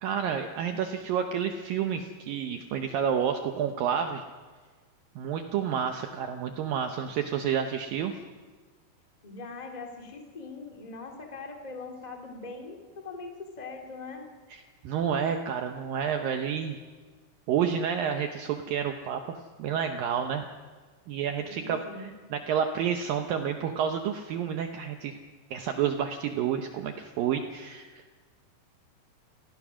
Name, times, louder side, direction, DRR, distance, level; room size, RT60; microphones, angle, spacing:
voice 1, 0.0-4.2 5.2-8.1 14.5-16.8 17.5-20.4 21.1-25.2 25.5-28.0, right 8 dB, 80° right, 6 dB, 2.0 m, -30 dB
voice 2, 9.2-14.3 21.4-22.1, left 3 dB, 45° left, 3 dB, 0.5 m, -41 dB
28.5 x 16.5 x 6.2 m, 1.4 s
omnidirectional pair, 5.2 m